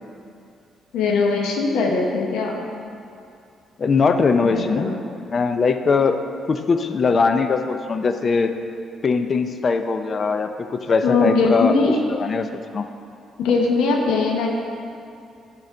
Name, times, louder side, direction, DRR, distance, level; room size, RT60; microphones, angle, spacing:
voice 1, 0.9-2.6 4.4-4.9 11.0-12.0 13.4-14.5, left 4 dB, 90° left, 0 dB, 1.0 m, -20 dB
voice 2, 3.8-4.9 5.3-6.2 6.5-8.5 9.0-11.7 12.0-12.5 12.7-12.8, left 4 dB, 45° left, 8 dB, 0.5 m, -20 dB
10.5 x 4.1 x 5.0 m, 2.5 s
cardioid pair, 90°, 0 cm